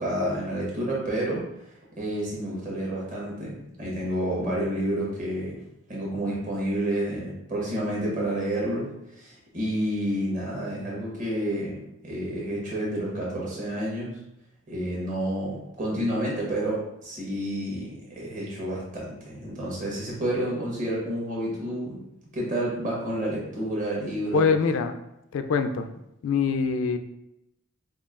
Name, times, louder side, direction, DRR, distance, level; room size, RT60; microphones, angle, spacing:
voice 1, 0.0-5.6 5.9-14.2 14.7-22.0 22.3-24.5, right 1 dB, 35° right, -5 dB, 1.1 m, -30 dB
voice 2, 24.3-24.9 25.3-25.9 26.2-27.0, left 5 dB, 65° left, 8 dB, 0.3 m, -23 dB
5.0 x 2.4 x 2.4 m, 0.84 s
head